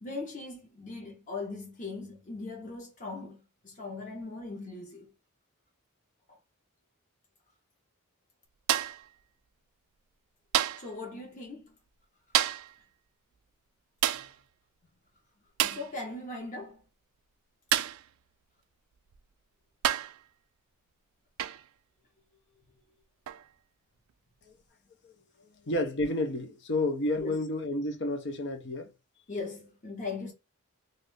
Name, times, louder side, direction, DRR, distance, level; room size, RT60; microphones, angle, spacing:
voice 1, 0.0-5.1 6.3-6.4 10.8-11.8 14.1-14.3 15.6-16.8 27.2-27.4 29.3-30.3, left 3 dB, 35° left, 1.0 m, -39 dB
sound 1, 8.7-9.1 10.5-10.9 12.3-12.8 14.0-14.4 15.6-15.9 17.7-18.1 19.1-19.2 19.8-20.2 21.4-21.7 23.3-23.5, right 11 dB, 65° right, 0.3 m, -28 dB
voice 2, 25.6-28.9, left 1 dB, 55° left, 0.7 m, -30 dB
2.6 x 2.6 x 3.2 m
head